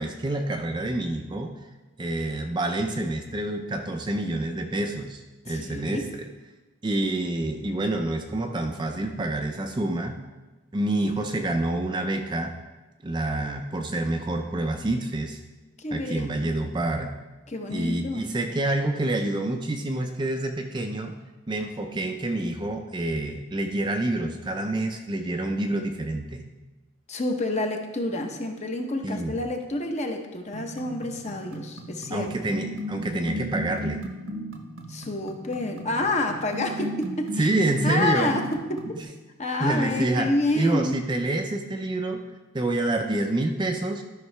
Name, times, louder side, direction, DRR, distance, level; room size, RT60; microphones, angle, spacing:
voice 1, 0.0-1.5 2.0-6.2 6.8-10.2 10.7-12.5 13.0-15.4 15.9-17.1 17.7-21.1 21.5-26.4 29.0-29.4 32.1-34.0 37.4-38.3 38.9-39.0 39.6-42.2 42.5-44.0, right 2 dB, 20° right, 4 dB, 0.4 m, -27 dB
voice 2, 5.4-6.0 15.8-16.5 17.5-18.2 27.1-32.3 34.9-37.5 37.8-38.8 39.4-40.9, left 2 dB, 30° left, 4 dB, 0.8 m, -28 dB
sound 1, 30.5-39.0, equal, 70° right, 0.9 m, -36 dB
12.5 x 5.6 x 3.3 m, 1.2 s
head